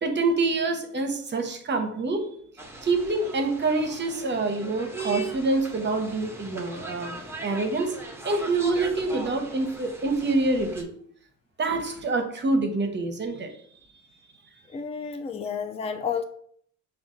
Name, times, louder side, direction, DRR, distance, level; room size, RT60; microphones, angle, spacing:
voice 1, 0.0-2.3 2.8-7.1 7.4-7.9 8.2-10.9 11.6-13.5, right 3 dB, 35° right, 6 dB, 0.8 m, -26 dB
sound 1, 2.6-10.8, right 3 dB, 10° right, 0.7 m, -39 dB
voice 2, 14.7-16.2, left 6 dB, 20° left, 8 dB, 0.4 m, -31 dB
5.1 x 2.4 x 3.7 m, 0.62 s
cardioid pair, 90°, 30 cm